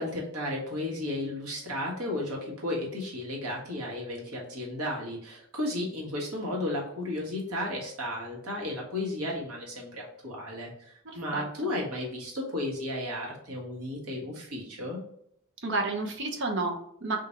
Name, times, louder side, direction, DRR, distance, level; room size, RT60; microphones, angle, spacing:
voice 1, 0.0-15.0, left 1 dB, 85° right, -2 dB, 1.5 m, -34 dB
voice 2, 11.0-11.4 15.6-17.2, right 3 dB, 55° right, 2 dB, 0.8 m, -31 dB
3.8 x 2.6 x 4.3 m, 0.71 s
head